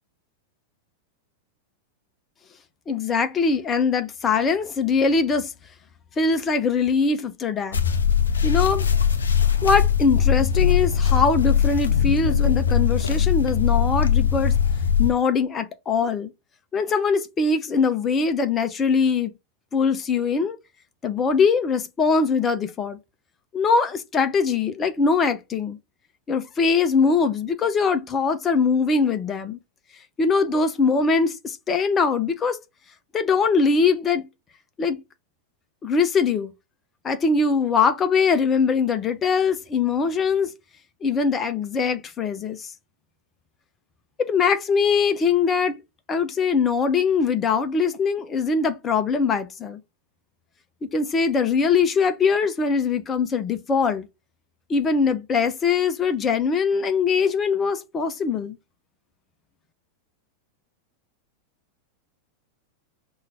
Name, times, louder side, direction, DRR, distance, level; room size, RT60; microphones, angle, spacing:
voice 1, 2.9-5.5 6.2-7.8 8.4-8.9 9.6-14.5 15.0-16.3 16.7-19.3 19.7-20.6 21.0-23.0 23.5-25.8 26.3-29.6 30.2-32.6 33.1-34.3 34.8-35.0 35.8-36.5 37.0-40.5 41.0-42.7 44.3-45.8 46.1-49.8 50.8-54.1 54.7-58.6, left 5 dB, 25° left, 0.8 m, -22 dB
sound 1, 7.7-15.1, left 7 dB, 70° left, 0.7 m, -20 dB
5.7 x 2.7 x 3.3 m
figure-of-eight pair, 90°, 0 cm